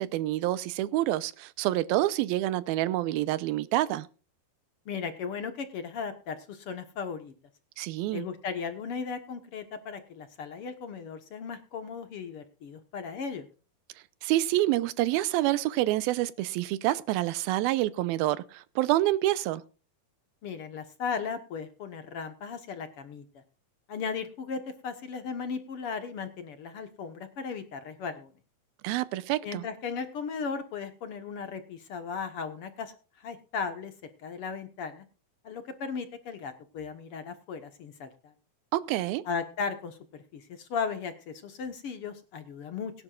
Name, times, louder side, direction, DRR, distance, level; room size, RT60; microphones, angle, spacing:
voice 1, 0.0-4.1 7.8-8.3 14.2-19.6 28.8-29.7 38.7-39.2, right 15 dB, 85° right, 2.6 m, -27 dB
voice 2, 4.8-7.3 8.1-13.5 20.4-23.4 23.9-28.3 29.4-33.9 34.2-35.0 35.4-38.3 39.2-42.9, left 5 dB, 65° left, 1.4 m, -36 dB
22.0 x 11.0 x 2.4 m
omnidirectional pair, 4.3 m